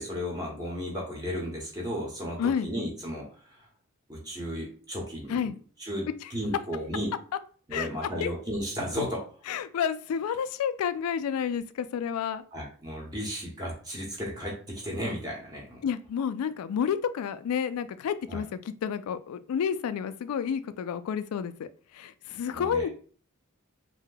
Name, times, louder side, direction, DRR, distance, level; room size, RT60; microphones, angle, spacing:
voice 1, 0.0-3.6 4.1-5.5 5.8-7.1 7.7-9.2 12.5-15.8 18.3-18.4 22.5-22.9, equal, 20° right, -2 dB, 0.9 m, -34 dB
voice 2, 9.5-12.4 15.8-21.7 21.9-22.9, left 7 dB, 90° left, 14 dB, 0.3 m, -30 dB
2.7 x 2.1 x 3.8 m, 0.42 s
head